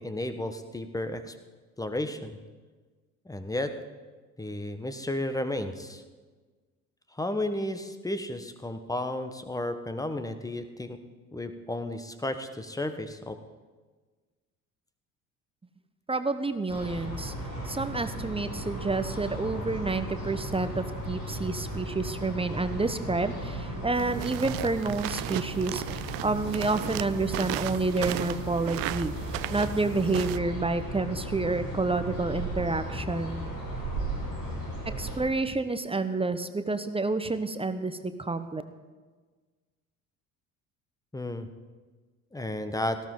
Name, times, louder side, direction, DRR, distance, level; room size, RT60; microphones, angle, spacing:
voice 1, 0.0-1.3 1.8-2.4 3.2-3.7 4.4-6.0 7.1-11.0 11.3-13.4 41.1-41.5 42.3-43.0, left 1 dB, 10° left, 9 dB, 1.4 m, -33 dB
voice 2, 16.1-17.3 17.6-29.1 29.5-33.5 35.0-38.6, right 3 dB, 15° right, 10 dB, 1.0 m, -29 dB
sound 1, 16.7-35.2, right 1 dB, 80° left, 6.1 m, -36 dB
sound 2, 23.9-30.4, right 17 dB, 55° right, 0.6 m, -36 dB
18.0 x 14.5 x 3.9 m, 1.4 s
figure-of-eight pair, 55°, 42 cm